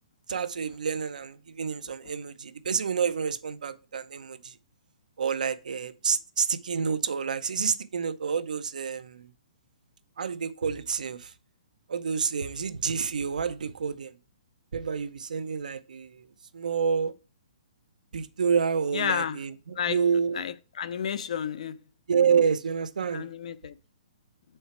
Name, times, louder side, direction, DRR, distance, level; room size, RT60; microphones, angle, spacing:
voice 1, 0.3-4.5 5.2-9.3 10.2-11.3 11.9-14.1 14.7-16.3 16.5-17.1 18.1-20.4 22.1-23.3, right 6 dB, 85° right, 0.6 m, -28 dB
voice 2, 18.9-19.4 19.8-20.0 20.4-20.5 20.8-21.7 23.1-23.7, left 8 dB, 55° left, 0.5 m, -30 dB
5.7 x 4.5 x 4.4 m
hypercardioid pair, 170°, 4 cm